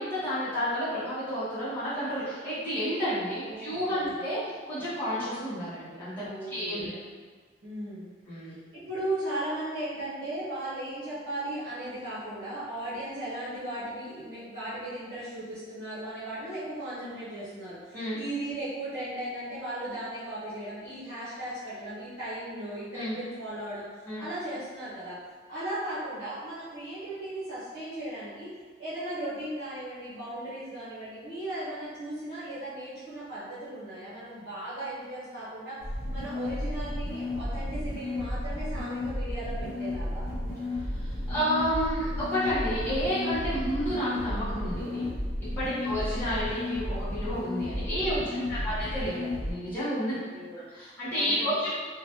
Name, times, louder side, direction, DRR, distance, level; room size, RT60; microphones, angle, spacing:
voice 1, 0.0-4.4 4.7-7.0 8.3-8.6 17.9-18.2 22.9-23.2 24.1-24.2 40.9-45.1 45.6-50.2 50.7-51.7, equal, 10° left, -14 dB, 1.0 m, -31 dB
voice 2, 3.4-4.1 6.2-6.9 7.6-8.0 8.5-25.2 25.5-28.5 28.8-35.8 36.1-40.3 45.6-46.0 48.2-48.7 50.1-50.6 51.1-51.7, right 1 dB, 60° right, -13 dB, 0.9 m, -37 dB
sound 1, 35.8-49.5, left 1 dB, 55° left, 0.6 m, -33 dB
2.9 x 2.2 x 2.7 m, 1.5 s
head